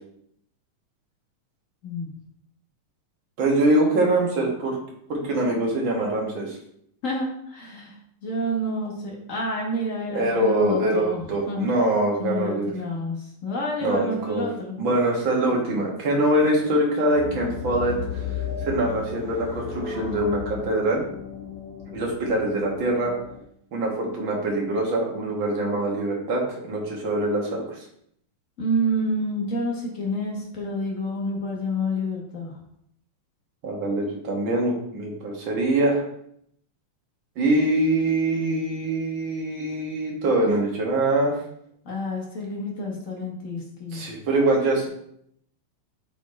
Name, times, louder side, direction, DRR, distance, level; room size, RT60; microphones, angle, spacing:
voice 1, 3.4-4.8 5.1-6.6 10.1-12.7 13.8-14.5 14.8-18.2 18.6-21.0 21.9-23.1 23.7-27.8 33.6-36.0 37.4-41.3 43.9-44.9, right 1 dB, 50° right, -1 dB, 1.9 m, -23 dB
voice 2, 7.0-7.9 8.2-11.7 12.2-14.8 15.5-15.8 28.6-32.6 41.8-44.0, equal, 65° left, -2 dB, 0.7 m, -29 dB
sound 1, 17.1-23.4, left 7 dB, 85° left, 2.8 m, -34 dB
6.6 x 4.2 x 4.2 m, 0.70 s
omnidirectional pair, 3.3 m